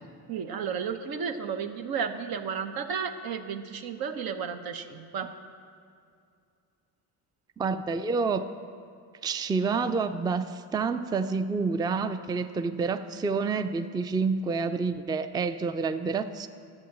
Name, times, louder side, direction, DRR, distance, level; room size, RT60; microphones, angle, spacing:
voice 1, 0.3-5.3, right 6 dB, 70° right, 7 dB, 0.9 m, -33 dB
voice 2, 7.6-8.5 9.2-16.5, right 4 dB, 10° right, 10 dB, 0.4 m, -28 dB
11.5 x 7.8 x 7.2 m, 2.4 s
cardioid pair, 90°, 37 cm